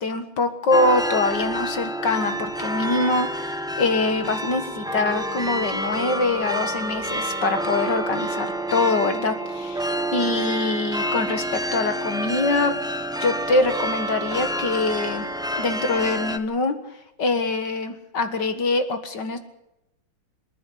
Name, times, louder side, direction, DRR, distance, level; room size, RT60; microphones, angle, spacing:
voice 1, 0.0-12.8 13.2-15.3 15.6-16.8 17.2-19.4, left 3 dB, 55° left, 8 dB, 2.1 m, -24 dB
sound 1, 0.7-16.4, right 1 dB, 5° right, 0.5 m, -28 dB
27.0 x 10.0 x 10.0 m, 0.88 s
omnidirectional pair, 2.4 m